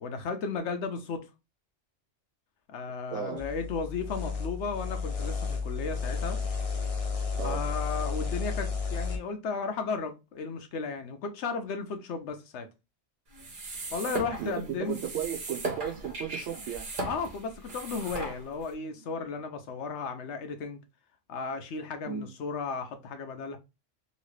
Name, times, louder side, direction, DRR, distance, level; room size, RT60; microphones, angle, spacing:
voice 1, 0.0-1.2 2.7-6.4 7.4-12.7 13.9-15.0 17.1-20.8 21.3-23.6, left 4 dB, 75° left, 1.0 m, -34 dB
voice 2, 3.1-3.4 7.4-7.7 14.4-16.9 22.0-22.3, right 9 dB, 75° right, 0.9 m, -35 dB
sound 1, 3.4-9.2, left 5 dB, 35° left, 0.7 m, -32 dB
sound 2, 13.3-18.7, right 2 dB, 45° right, 1.0 m, -38 dB
3.0 x 2.8 x 3.1 m
omnidirectional pair, 1.2 m